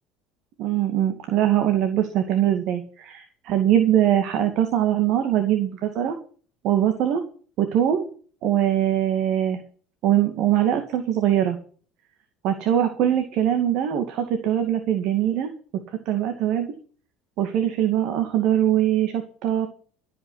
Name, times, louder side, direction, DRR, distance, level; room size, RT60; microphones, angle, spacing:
voice 1, 0.6-6.2 6.6-7.2 7.6-8.1 8.4-9.6 10.0-11.6 12.4-15.5 16.1-16.7 17.4-19.7, right 11 dB, 60° right, 6 dB, 2.2 m, -22 dB
14.0 x 6.3 x 9.9 m, 0.43 s
cardioid pair, 120°, 0 cm